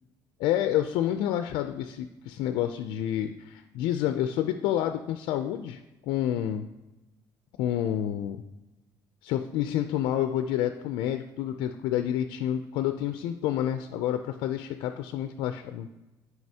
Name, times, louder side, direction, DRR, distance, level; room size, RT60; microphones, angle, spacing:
voice 1, 0.4-6.7 7.6-8.4 9.2-15.9, left 11 dB, 90° left, 8 dB, 0.3 m, -29 dB
9.4 x 4.7 x 2.8 m, 1.0 s
cardioid pair, 115°, 8 cm